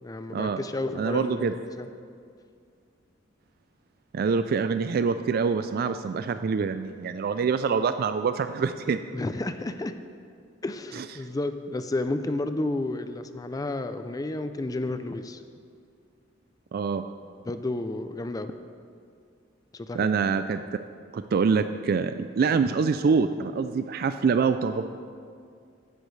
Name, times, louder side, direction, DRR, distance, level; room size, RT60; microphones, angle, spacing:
voice 1, 0.0-1.9 9.1-10.0 10.6-15.4 17.5-18.5 19.7-20.1, left 2 dB, 20° left, 10 dB, 0.4 m, -31 dB
voice 2, 1.0-1.5 4.1-9.0 11.0-11.1 16.7-17.0 19.9-20.6 21.1-24.9, right 5 dB, 55° right, 10 dB, 0.3 m, -25 dB
15.5 x 10.0 x 3.2 m, 2.3 s
head